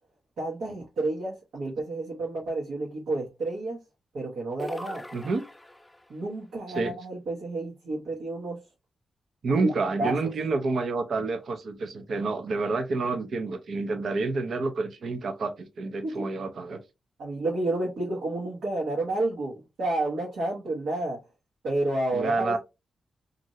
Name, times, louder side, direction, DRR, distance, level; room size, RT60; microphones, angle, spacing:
voice 1, 0.4-3.8 4.1-5.0 6.1-8.6 9.6-9.7 10.0-10.3 16.0-16.3 17.2-21.2 21.6-22.6, right 2 dB, 90° right, 1.1 m, -30 dB
sound 1, 4.6-6.1, left 1 dB, 10° left, 0.3 m, -40 dB
voice 2, 9.4-16.8 22.1-22.6, right 3 dB, 70° right, 0.5 m, -28 dB
2.7 x 2.5 x 3.0 m
cardioid pair, 75°, 0 cm